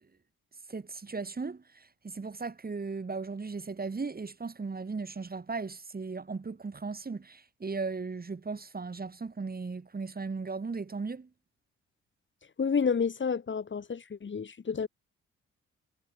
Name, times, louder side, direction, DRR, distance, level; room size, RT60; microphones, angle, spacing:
voice 1, 0.7-11.3, right 4 dB, 30° right, 2.7 m, -37 dB
voice 2, 12.6-14.9, left 6 dB, 40° left, 1.9 m, -30 dB
hypercardioid pair, 50°, 30 cm